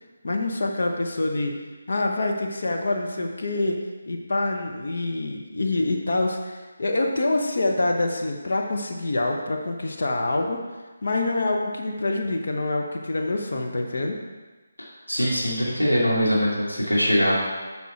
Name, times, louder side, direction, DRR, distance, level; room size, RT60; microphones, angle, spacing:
voice 1, 0.2-1.6 1.9-10.6 11.0-14.2, left 2 dB, 55° left, 2 dB, 1.0 m, -26 dB
voice 2, 15.1-17.4, equal, 90° left, -5 dB, 2.5 m, -22 dB
9.3 x 6.1 x 4.5 m, 1.3 s
figure-of-eight pair, 150°, 0 cm